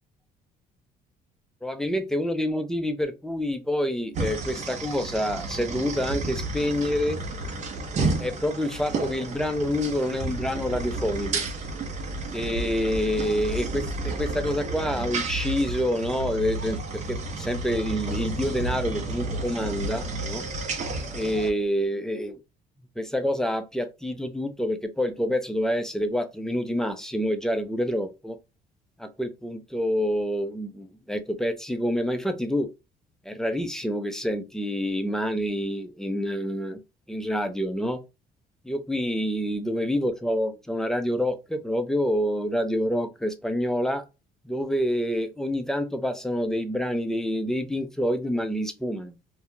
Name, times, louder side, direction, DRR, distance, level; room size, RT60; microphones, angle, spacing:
voice 1, 1.6-7.2 8.2-11.4 12.3-20.4 21.1-22.4 23.0-28.4 29.0-32.7 33.3-36.8 37.1-38.0 38.6-44.0 44.4-49.1, equal, 5° left, 0.4 m, -27 dB
sound 1, 4.1-21.5, right 3 dB, 45° right, 0.6 m, -31 dB
2.4 x 2.1 x 3.0 m
cardioid pair, 110°, 17 cm